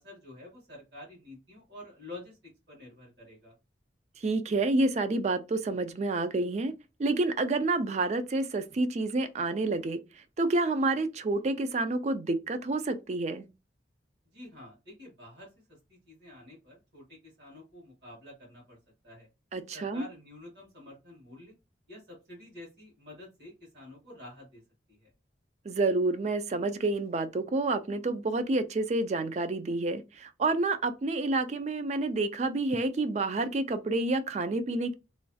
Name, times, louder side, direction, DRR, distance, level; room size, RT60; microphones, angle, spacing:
voice 1, 0.0-3.5 14.2-15.5 15.9-18.8 19.0-19.3 19.7-21.5 21.9-24.6 24.9-25.1, left 1 dB, 65° right, 1.7 m, -49 dB
voice 2, 4.2-6.7 7.0-13.5 19.5-20.1 25.7-34.9, right 2 dB, 40° right, 0.3 m, -29 dB
3.1 x 2.3 x 2.6 m
head